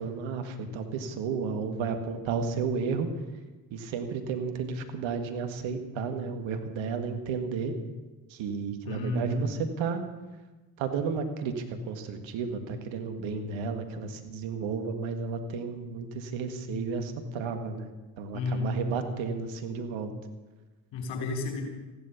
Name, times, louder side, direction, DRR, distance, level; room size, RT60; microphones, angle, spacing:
voice 1, 0.0-3.1 3.7-7.7 8.3-10.0 10.8-17.9 18.2-20.1, right 5 dB, 80° right, 7 dB, 1.8 m, -32 dB
voice 2, 8.8-9.4 13.3-13.6 18.3-18.8 20.9-21.6, left 2 dB, 75° left, 3 dB, 4.0 m, -31 dB
15.0 x 12.0 x 7.1 m, 1.2 s
hypercardioid pair, 45°, 46 cm